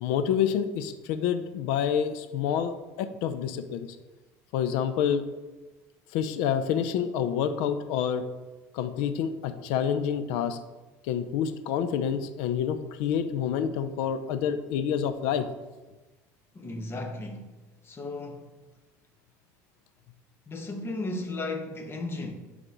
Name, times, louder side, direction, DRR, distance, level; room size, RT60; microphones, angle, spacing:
voice 1, 0.0-3.9 4.5-5.2 6.1-8.2 8.7-10.6 11.0-15.5, left 8 dB, 80° left, 0.6 m, -28 dB
voice 2, 16.5-17.5 17.8-18.6 20.5-22.3, left 2 dB, 30° left, 1.3 m, -35 dB
11.0 x 4.0 x 3.1 m
supercardioid pair, 90°, 8 cm